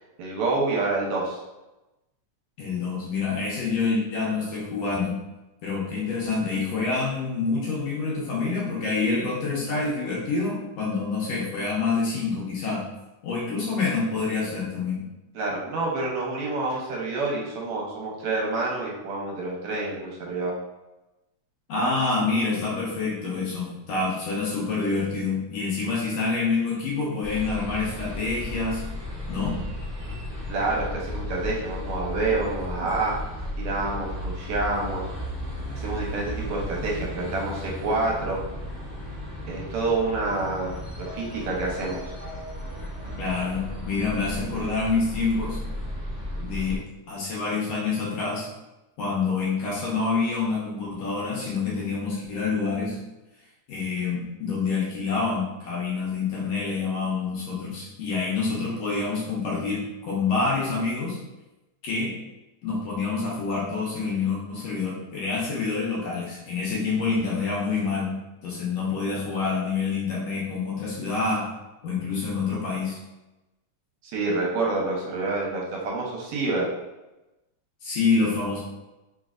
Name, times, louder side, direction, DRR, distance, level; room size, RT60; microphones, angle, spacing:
voice 1, 0.2-1.4 15.4-20.5 30.5-33.1 33.6-35.0 35.7-38.4 39.5-42.1 74.0-76.7, right 3 dB, 75° right, -2 dB, 1.8 m, -28 dB
voice 2, 2.6-5.2 5.6-12.9 13.2-15.1 21.7-28.8 29.3-29.6 43.2-45.6 46.4-46.8 47.1-48.5 49.0-53.0 53.7-61.2 61.8-62.1 62.6-68.2 68.4-71.5 71.8-73.0 77.8-78.6, left 4 dB, 70° left, -5 dB, 1.7 m, -27 dB
sound 1, 27.2-46.8, left 1 dB, 35° left, 0.5 m, -35 dB
4.2 x 3.2 x 2.4 m, 1.0 s
omnidirectional pair, 3.4 m